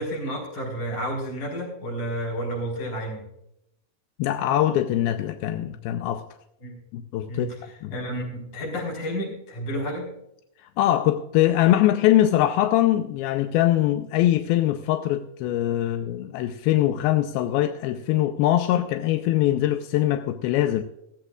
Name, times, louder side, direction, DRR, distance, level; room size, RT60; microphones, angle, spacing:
voice 1, 0.0-3.2 6.6-6.7 7.3-10.1, equal, 50° left, 5.5 m, -31 dB
voice 2, 4.2-6.2 6.9-7.5 7.8-7.9 10.8-20.8, left 13 dB, 85° left, 2.4 m, -22 dB
16.5 x 14.5 x 2.4 m
omnidirectional pair, 4.6 m